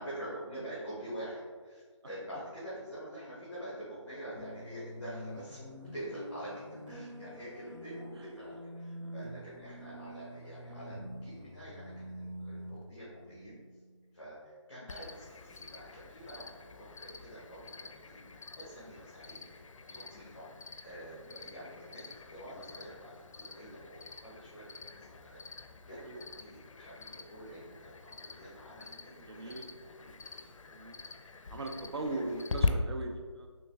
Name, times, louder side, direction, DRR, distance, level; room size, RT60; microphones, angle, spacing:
voice 1, 0.0-13.6 14.1-19.5 19.8-20.5 20.8-30.4 31.1-32.7, right 1 dB, 5° left, -11 dB, 0.5 m, -46 dB
sound 1, 4.3-14.2, equal, 85° right, 1.1 m, -46 dB
Cricket, 14.9-32.7, left 4 dB, 85° left, 0.4 m, -43 dB
voice 2, 28.9-29.7 30.7-31.0 31.5-33.5, right 2 dB, 55° right, 4 dB, 0.4 m, -39 dB
3.4 x 3.1 x 3.3 m, 1.5 s
figure-of-eight pair, 175°, 16 cm